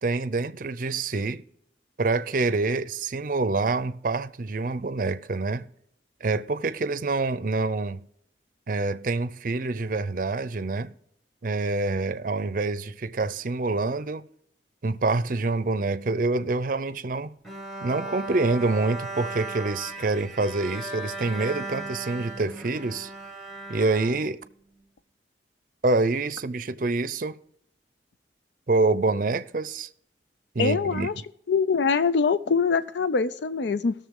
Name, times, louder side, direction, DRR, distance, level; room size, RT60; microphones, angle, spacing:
voice 1, 0.0-1.4 2.0-5.7 6.2-8.1 8.7-10.9 11.4-14.3 14.8-17.4 17.8-23.1 23.7-24.4 25.8-27.4 28.7-29.9 30.5-31.1, right 3 dB, 50° right, 0.5 m, -26 dB
Bowed string instrument, 17.4-24.8, right 2 dB, ahead, 1.3 m, -37 dB
voice 2, 30.6-31.2 31.5-33.9, left 5 dB, 80° left, 0.5 m, -23 dB
18.0 x 6.8 x 3.7 m
head